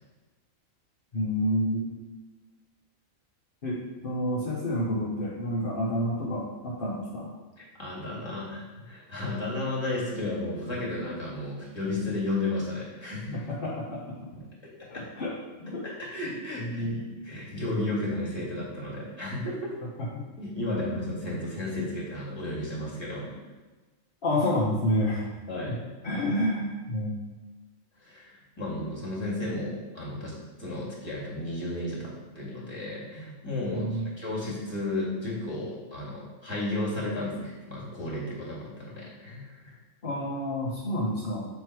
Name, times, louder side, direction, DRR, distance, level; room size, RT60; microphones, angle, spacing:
voice 1, 1.1-1.8 3.6-7.3 13.3-14.0 14.9-15.3 15.6-15.8 16.6-17.0 24.2-25.2 26.0-27.2 33.7-34.1 40.0-41.5, left 1 dB, 45° left, -5 dB, 1.2 m, -29 dB
voice 2, 7.6-13.4 14.3-14.4 14.8-15.0 15.8-19.7 20.4-23.4 25.5-25.8 28.0-30.3 30.6-39.7, left 2 dB, 20° left, -6 dB, 2.2 m, -33 dB
7.2 x 4.5 x 4.7 m, 1.2 s
omnidirectional pair, 1.4 m